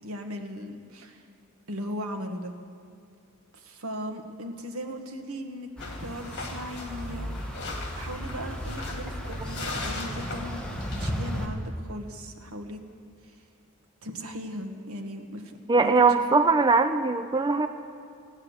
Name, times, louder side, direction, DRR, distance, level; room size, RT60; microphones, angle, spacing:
voice 1, 0.0-1.2 1.7-2.5 3.5-5.7 6.0-7.5 8.0-10.6 11.0-12.8 13.3-13.4 14.0-15.9, equal, 85° right, 5 dB, 1.4 m, -38 dB
sound 1, 5.8-11.1, left 3 dB, 55° left, 2.1 m, -39 dB
sound 2, 5.8-11.5, equal, 5° left, 1.3 m, -35 dB
voice 2, 15.7-17.7, right 4 dB, 20° right, 8 dB, 0.4 m, -21 dB
16.5 x 9.8 x 8.0 m, 2.4 s
head